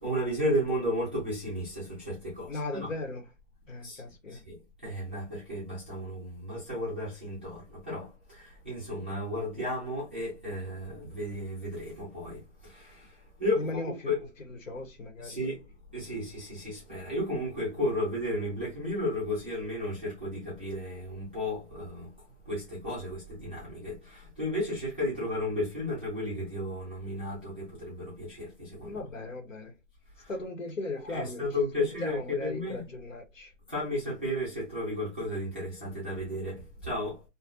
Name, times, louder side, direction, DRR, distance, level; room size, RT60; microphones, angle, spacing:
voice 1, 0.0-2.9 3.8-4.0 4.3-14.3 15.2-29.0 30.2-30.4 31.0-32.8 33.7-37.2, left 1 dB, 10° right, 0.4 m, -34 dB
voice 2, 2.5-3.2 3.7-4.4 13.5-14.1 14.5-15.4 28.8-29.8 30.3-31.4 31.8-33.5, left 2 dB, 85° left, 1.0 m, -37 dB
2.4 x 2.2 x 2.6 m
hypercardioid pair, 145°, 38 cm